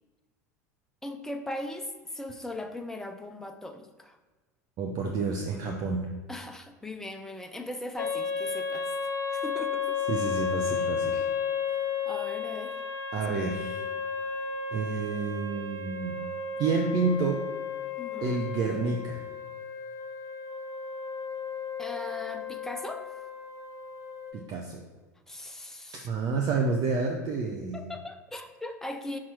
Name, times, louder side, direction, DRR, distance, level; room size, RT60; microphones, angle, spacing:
voice 1, 1.0-4.2 6.3-8.9 9.3-10.0 11.7-12.8 18.0-18.4 21.8-23.1 25.3-26.1 27.7-29.2, left 1 dB, 5° left, 5 dB, 0.6 m, -39 dB
voice 2, 4.8-6.1 10.1-11.3 13.1-13.8 14.7-16.2 16.6-17.4 18.2-19.2 24.3-24.8 26.0-27.8, right 4 dB, 45° right, 2 dB, 0.7 m, -29 dB
sound 1, 8.0-24.3, left 6 dB, 40° left, 0.9 m, -33 dB
5.9 x 4.3 x 4.7 m, 1.3 s
figure-of-eight pair, 80°, 9 cm